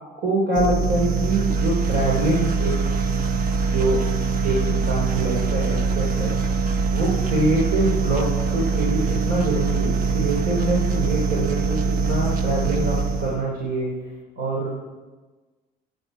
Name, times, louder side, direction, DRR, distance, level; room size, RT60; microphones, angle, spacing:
voice 1, 0.2-2.9 3.6-4.0 4.4-6.3 6.9-13.9 14.4-14.8, right 2 dB, 75° right, -3 dB, 3.3 m, -25 dB
sound 1, 0.5-13.5, right 4 dB, 55° right, 1.2 m, -23 dB
16.5 x 8.9 x 5.0 m, 1.3 s
cardioid pair, 110°, 17 cm